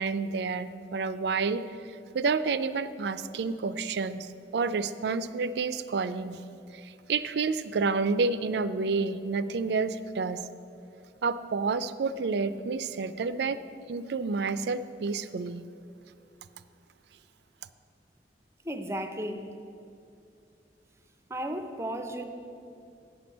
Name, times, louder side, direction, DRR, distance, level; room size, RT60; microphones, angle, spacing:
voice 1, 0.0-1.6 2.1-4.3 4.5-6.4 6.7-10.4 11.2-13.6 13.9-15.6, right 4 dB, 70° right, 13 dB, 0.4 m, -29 dB
voice 2, 18.6-19.5 21.3-22.2, right 1 dB, 15° right, 7 dB, 0.6 m, -34 dB
9.4 x 6.1 x 7.2 m, 2.5 s
head